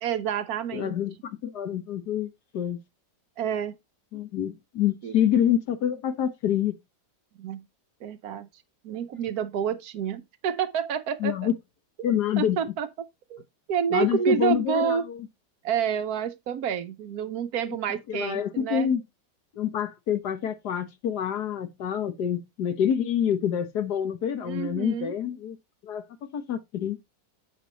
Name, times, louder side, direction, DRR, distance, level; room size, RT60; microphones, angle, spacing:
voice 1, 0.0-0.9 3.4-3.8 5.0-5.1 7.4-7.7 8.0-8.5 8.8-11.4 12.4-12.9 13.3-13.4 13.7-15.1 15.6-18.9 24.4-25.2, right 8 dB, 70° right, 1.1 m, -28 dB
voice 2, 0.7-2.8 4.1-6.8 11.2-11.5 12.0-12.7 13.9-15.2 18.1-19.0 19.5-25.6 25.8-27.0, left 9 dB, 75° left, 1.6 m, -27 dB
8.2 x 6.2 x 3.0 m
omnidirectional pair, 1.8 m